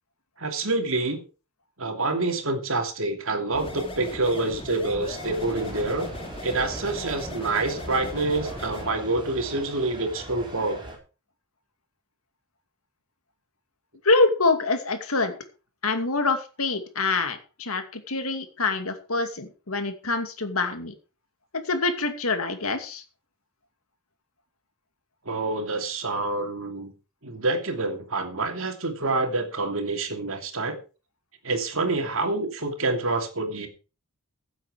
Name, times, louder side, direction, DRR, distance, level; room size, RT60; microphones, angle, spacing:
voice 1, 0.4-1.2 1.8-6.1 6.4-10.8 25.2-26.9 27.2-30.8 31.4-33.7, right 2 dB, 65° right, 5 dB, 2.7 m, -27 dB
sound 1, 3.5-8.9, left 1 dB, 25° left, 2.9 m, -38 dB
sound 2, 5.0-11.0, right 1 dB, 20° right, 4.8 m, -40 dB
voice 2, 14.0-15.4 15.8-20.9 21.5-23.0, left 3 dB, 70° left, 7 dB, 2.5 m, -25 dB
15.5 x 8.1 x 4.9 m, 0.33 s
head